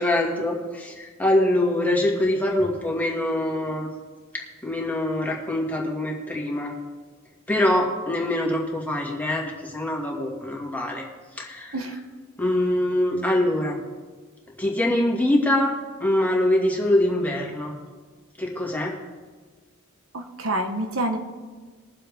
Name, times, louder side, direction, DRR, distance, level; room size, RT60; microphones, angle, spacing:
voice 1, 0.0-3.9 4.3-6.8 7.5-11.1 11.4-12.0 12.4-13.8 14.6-15.7 16.0-17.7 18.4-19.0, left 1 dB, 10° left, -2 dB, 2.0 m, -24 dB
voice 2, 20.1-21.2, right 1 dB, 80° right, 5 dB, 1.2 m, -27 dB
21.0 x 7.4 x 3.5 m, 1.4 s
head